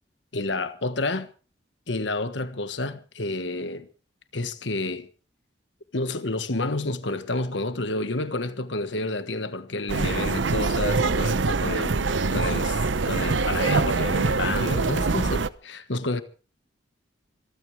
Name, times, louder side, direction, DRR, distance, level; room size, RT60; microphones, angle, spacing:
voice 1, 0.3-1.3 1.9-3.9 4.3-5.1 5.9-16.2, left 2 dB, 70° left, 1.4 m, -30 dB
sound 1, 9.9-15.5, right 3 dB, 80° right, 0.8 m, -24 dB
25.5 x 14.0 x 3.4 m
head